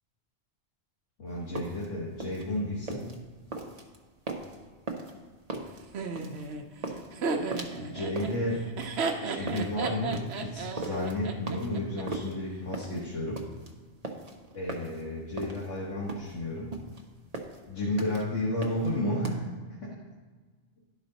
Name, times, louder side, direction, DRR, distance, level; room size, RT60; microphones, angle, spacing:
voice 1, 1.2-3.1 7.8-8.7 9.2-13.4 14.5-16.7 17.7-19.4, left 1 dB, 85° left, -6 dB, 1.8 m, -32 dB
sound 1, 1.3-19.4, right 2 dB, 40° right, 0.8 m, -40 dB
Laughter, 5.9-12.0, right 4 dB, 65° right, 0.9 m, -34 dB
11.5 x 5.0 x 4.0 m, 1.4 s
omnidirectional pair, 1.2 m